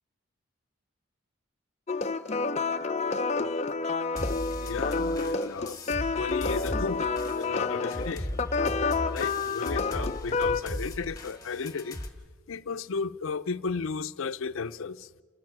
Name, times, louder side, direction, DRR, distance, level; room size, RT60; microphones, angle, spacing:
sound 1, 1.9-10.6, left 4 dB, 30° left, 0.5 m, -29 dB
sound 2, 4.2-12.1, left 1 dB, 15° left, 1.5 m, -37 dB
voice 1, 4.6-5.8 6.1-8.4 8.9-12.0 12.5-15.1, left 5 dB, 80° left, 0.5 m, -34 dB
28.5 x 13.5 x 7.2 m
head